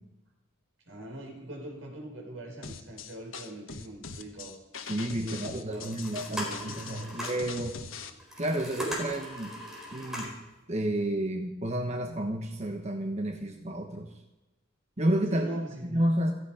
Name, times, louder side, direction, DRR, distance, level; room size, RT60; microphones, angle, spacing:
voice 1, 0.9-4.6 5.1-7.2 15.3-16.0, right 1 dB, 75° right, 1 dB, 4.9 m, -43 dB
sound 1, 2.6-8.1, left 5 dB, 80° left, 1.3 m, -42 dB
voice 2, 4.8-7.8 8.4-9.6 9.9-10.3 10.7-14.1 15.0-16.3, right 1 dB, 35° right, 4 dB, 1.1 m, -31 dB
sound 2, 5.7-7.5 8.2-10.5, equal, 5° right, 4.3 m, -38 dB
16.0 x 15.0 x 5.0 m, 1.0 s
head